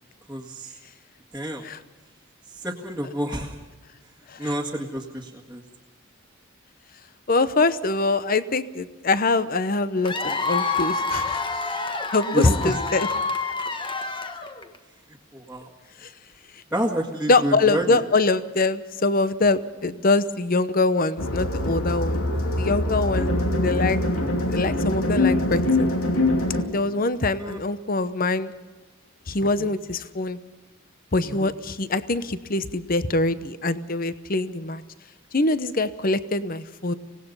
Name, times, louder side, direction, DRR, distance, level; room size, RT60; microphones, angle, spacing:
voice 1, 0.3-0.8 1.3-1.7 2.5-3.6 4.4-5.6 12.3-12.8 15.1-15.7 16.7-18.0 27.4-27.6 29.6-29.7 31.3-31.5, equal, 5° right, -4 dB, 1.9 m, -29 dB
voice 2, 7.3-11.4 12.1-13.1 16.0-16.1 17.3-22.3 22.6-23.3 23.6-24.0 24.5-25.9 26.7-28.5 29.3-30.4 31.1-34.8 35.3-36.9, left 3 dB, 40° left, 13 dB, 0.9 m, -23 dB
Cheering / Applause / Crowd, 10.0-14.8, left 4 dB, 25° left, 1.2 m, -28 dB
sound 1, 21.2-26.6, left 1 dB, 85° left, 2.9 m, -23 dB
25.5 x 18.5 x 5.5 m, 1.2 s
head